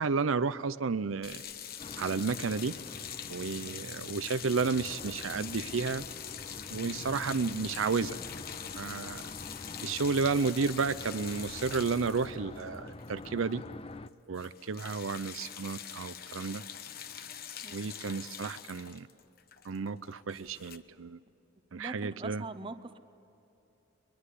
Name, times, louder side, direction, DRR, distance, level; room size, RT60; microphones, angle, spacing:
voice 1, 0.0-1.4 2.0-2.7 3.3-6.0 6.7-8.2 8.7-9.2 9.8-13.6 14.3-16.6 17.7-19.1 19.6-21.2 21.7-22.4, right 4 dB, 85° right, 14 dB, 0.6 m, -32 dB
sound 1, 1.2-13.6 13.9-14.1 14.3-20.8, left 9 dB, 50° left, 1.0 m, -44 dB
sound 2, 1.8-14.1, left 2 dB, 30° left, 0.5 m, -46 dB
voice 2, 21.7-23.0, right 3 dB, 25° right, 11 dB, 0.8 m, -42 dB
22.5 x 21.5 x 8.4 m, 2.9 s
head